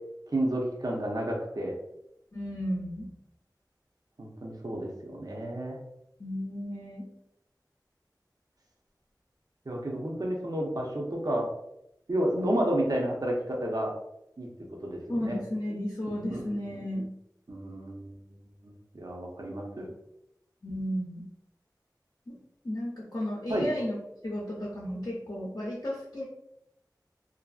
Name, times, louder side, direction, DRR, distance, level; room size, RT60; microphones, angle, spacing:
voice 1, 0.3-1.7 4.2-5.8 9.7-11.5 12.1-13.9 14.4-14.5 14.8-15.4 16.1-16.4 16.7-16.8 17.5-18.1 18.6-19.9 23.5-23.7, right 1 dB, 55° right, -1 dB, 0.6 m, -31 dB
voice 2, 2.3-3.1 6.2-7.1 15.1-17.1 20.6-21.3 22.3-22.4 22.6-24.0 24.2-26.2, equal, 55° left, -4 dB, 0.6 m, -33 dB
2.6 x 2.5 x 2.3 m, 0.81 s
wide cardioid pair, 40°, 8 cm